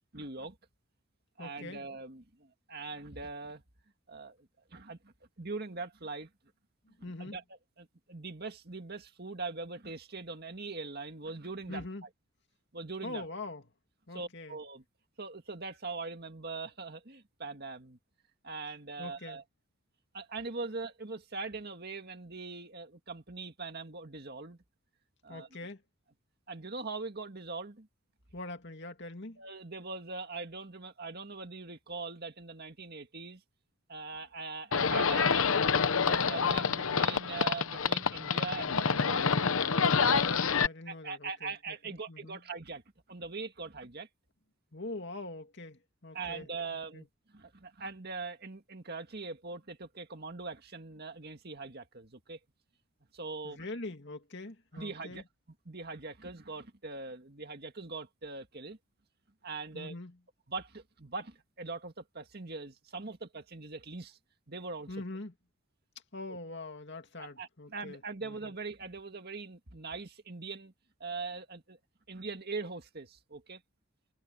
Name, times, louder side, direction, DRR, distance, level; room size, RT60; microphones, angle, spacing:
voice 1, 0.1-0.6 1.4-3.6 4.1-6.3 7.2-7.4 7.8-12.1 12.7-13.3 14.1-14.8 15.2-18.0 18.4-19.4 20.1-24.6 25.2-25.5 26.5-27.9 29.4-33.4 33.9-35.4 36.0-39.3 40.6-42.8 43.1-44.1 46.1-52.4 53.1-53.6 54.7-55.2 55.7-58.8 59.4-59.9 60.5-64.2 64.5-65.0 66.3-66.4 67.2-70.7 71.0-71.8 72.1-73.6, right 3 dB, 45° right, 2.0 m, -41 dB
voice 2, 1.4-1.8 6.8-7.4 11.7-12.0 13.0-13.6 14.1-14.6 19.0-19.4 25.3-25.8 28.3-29.4 40.2-42.4 44.7-47.0 53.4-55.2 59.7-60.2 64.9-65.3 66.1-68.5, left 2 dB, 50° left, 2.6 m, -43 dB
Livestock farm animals working animals, 34.7-40.7, left 5 dB, 70° left, 1.0 m, -27 dB
head